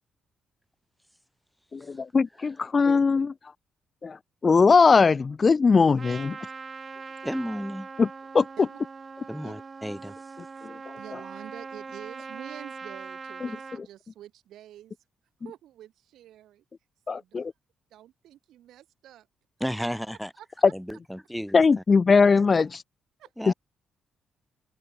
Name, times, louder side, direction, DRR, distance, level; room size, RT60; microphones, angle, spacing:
voice 1, 1.7-3.3 4.0-4.2 4.4-6.4 8.0-8.1 8.3-8.4 10.6-10.7 13.4-13.5 17.1-17.5 21.5-22.7 23.5-23.6, left 4 dB, 30° left, 0.4 m, -20 dB
Trumpet, 6.0-13.8, right 4 dB, 30° right, 3.9 m, -41 dB
voice 2, 7.2-7.9 9.3-10.3 19.6-20.3 20.7-21.8 23.4-23.5, equal, ahead, 1.5 m, -34 dB
voice 3, 11.0-15.0 15.4-16.6 17.1-17.4 17.9-19.3 23.2-23.3, right 12 dB, 90° right, 4.5 m, -47 dB
cardioid pair, 155°, 0 cm